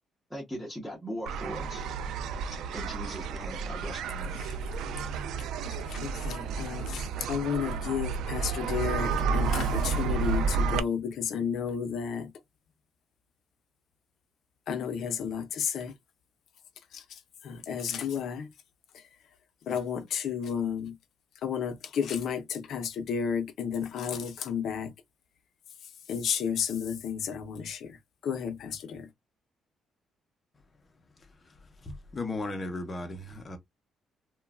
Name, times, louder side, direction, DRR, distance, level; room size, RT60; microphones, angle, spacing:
voice 1, 0.3-1.8 2.7-4.4, equal, ahead, 0.9 m, -39 dB
sound 1, 1.3-10.8, right 5 dB, 85° right, 0.3 m, -31 dB
voice 2, 5.7-12.3 14.7-15.9 16.9-18.5 18.9-19.1 19.7-21.0 21.4-24.9 25.8-29.1, left 7 dB, 65° left, 0.6 m, -32 dB
voice 3, 31.2-33.6, left 2 dB, 25° left, 0.6 m, -37 dB
3.0 x 2.2 x 2.3 m
cardioid pair, 150°, 0 cm